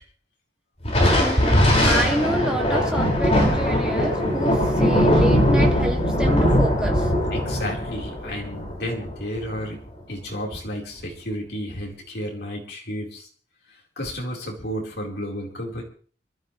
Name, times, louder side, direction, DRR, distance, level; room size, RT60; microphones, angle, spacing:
Thunder, 0.8-9.6, equal, 35° left, 5.9 m, -20 dB
voice 1, 1.2-7.1, right 1 dB, 5° right, 0 dB, 2.4 m, -28 dB
voice 2, 7.3-9.8 10.1-13.3 14.0-15.8, equal, 60° left, 0 dB, 4.6 m, -32 dB
26.0 x 12.5 x 3.4 m, 0.42 s
head